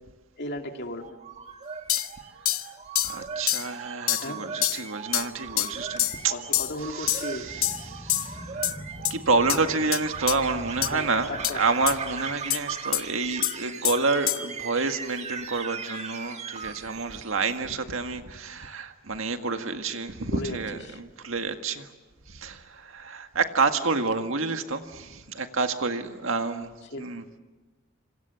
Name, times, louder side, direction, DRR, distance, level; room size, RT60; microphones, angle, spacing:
voice 1, 0.4-1.2 4.2-4.4 6.3-7.6 10.9-11.6 20.2-21.0 26.9-27.1, left 1 dB, 55° left, 4 dB, 2.4 m, -36 dB
sound 1, 0.9-17.5, right 5 dB, 35° right, 1.6 m, -39 dB
sound 2, 1.9-2.1 2.5-2.7 3.0-3.2 3.5-3.7 4.1-4.3 4.6-4.8 5.1-5.3 5.6-5.7 6.0-6.2 6.5-6.7 7.1-7.3 7.6-7.8 8.1-8.3 8.6-8.7 9.1-9.2 9.5-9.6 9.9-10.0 10.3-10.4 10.8-10.9 11.4-11.5 11.9-12.0 12.5-12.6 12.9-13.0 13.4-13.5 13.8-14.0 14.3-14.4, left 14 dB, 75° left, 1.0 m, -25 dB
voice 2, 3.0-6.3 6.9-8.4 9.1-21.9 22.3-26.7 27.0-27.2, right 4 dB, 70° right, 6 dB, 1.9 m, -29 dB
sound 3, 7.3-13.3, equal, ahead, 2.9 m, -44 dB
27.0 x 26.5 x 7.1 m, 1.2 s
head